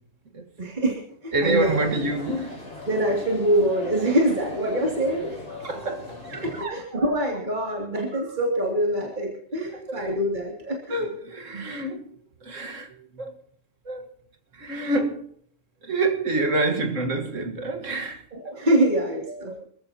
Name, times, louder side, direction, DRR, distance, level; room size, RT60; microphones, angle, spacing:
voice 1, 0.6-1.9 2.9-5.4 6.3-11.0 11.5-11.6 18.3-19.6, right 1 dB, 35° right, 2.9 m, -25 dB
voice 2, 1.3-2.6 5.6-7.1 8.1-8.2 9.7-10.1 10.9-12.2 12.4-13.4 13.9-14.1 14.5-15.3 15.8-19.0 19.3-19.6, right 2 dB, 60° right, 2.0 m, -28 dB
sound 1, 1.5-6.7, left 2 dB, 50° left, 5.2 m, -39 dB
26.5 x 14.5 x 2.9 m
omnidirectional pair, 1.5 m